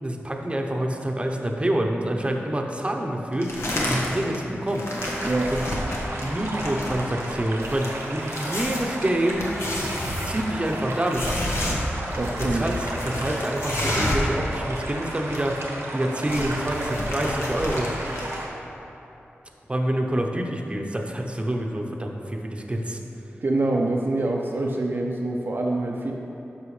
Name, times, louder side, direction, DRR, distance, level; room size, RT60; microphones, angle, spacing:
voice 1, 0.0-4.8 5.5-5.7 6.2-7.9 8.1-9.4 10.2-11.4 12.4-12.8 13.0-15.6 15.9-17.9 19.7-23.0, right 1 dB, 25° right, 1 dB, 0.8 m, -27 dB
sound 1, 3.4-4.4 4.7-14.3 14.6-14.7 14.9-15.6 15.9-18.4, left 1 dB, 75° left, 1.3 m, -30 dB
sound 2, 5.0-18.5, right 1 dB, 85° right, 1.0 m, -34 dB
voice 2, 12.1-12.7 23.4-26.1, right 2 dB, 50° right, -1 dB, 0.5 m, -25 dB
11.0 x 6.0 x 3.3 m, 2.9 s
wide cardioid pair, 60°, 4 cm